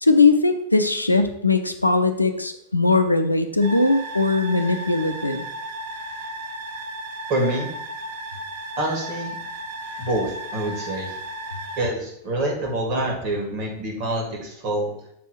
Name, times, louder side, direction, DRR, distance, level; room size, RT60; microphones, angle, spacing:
voice 1, 0.0-5.5, left 3 dB, 85° left, 8 dB, 0.5 m, -20 dB
sound 1, 3.6-11.9, right 1 dB, 60° right, 0.9 m, -35 dB
voice 2, 7.3-7.7 8.8-9.4 10.0-11.1 11.8-14.9, right 1 dB, 45° right, 0 dB, 2.2 m, -26 dB
7.4 x 3.5 x 4.9 m, 0.77 s
figure-of-eight pair, 90°, 0 cm